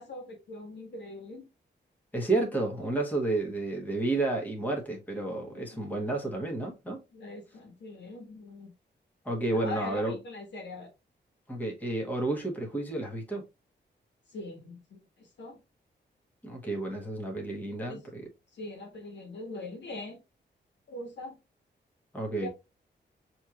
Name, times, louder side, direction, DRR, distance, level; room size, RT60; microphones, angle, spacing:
voice 1, 0.0-1.5 5.5-5.9 7.1-8.7 9.5-10.9 14.3-15.6 17.5-18.0 18.5-20.2 20.9-21.4 22.4-22.5, left 2 dB, 75° left, 1.5 m, -42 dB
voice 2, 2.1-7.0 9.2-10.2 11.5-13.4 16.4-18.2 22.1-22.5, right 2 dB, 10° left, 1.2 m, -31 dB
6.2 x 3.0 x 2.4 m
wide cardioid pair, 145°, 18 cm